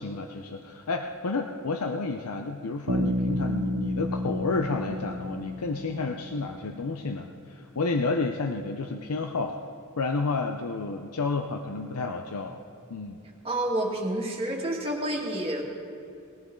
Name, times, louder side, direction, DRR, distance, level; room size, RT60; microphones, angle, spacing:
voice 1, 0.0-9.6 10.0-12.6 12.9-13.2, left 3 dB, 80° left, 4 dB, 0.7 m, -30 dB
Bass guitar, 2.9-6.6, equal, 45° right, 0.8 m, -30 dB
voice 2, 13.4-15.6, right 1 dB, 25° right, -1 dB, 2.1 m, -29 dB
20.0 x 14.0 x 3.8 m, 2.6 s
head